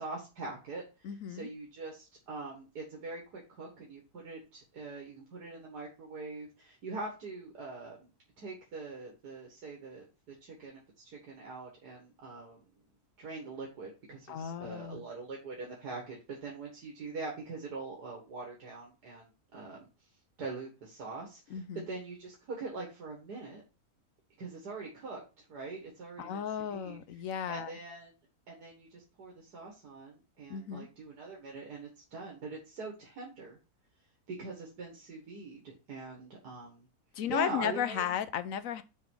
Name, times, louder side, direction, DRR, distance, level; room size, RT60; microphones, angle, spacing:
voice 1, 0.0-8.1 8.4-12.6 13.2-19.9 20.4-23.6 24.4-27.0 27.5-28.2 28.5-33.6 34.3-36.9 37.3-38.1, right 3 dB, 90° right, 2.2 m, -43 dB
voice 2, 1.0-1.5 14.3-15.0 21.5-21.9 26.2-27.7 30.5-30.9 37.1-38.8, left 9 dB, 65° left, 1.0 m, -34 dB
6.9 x 4.5 x 4.7 m
omnidirectional pair, 1.7 m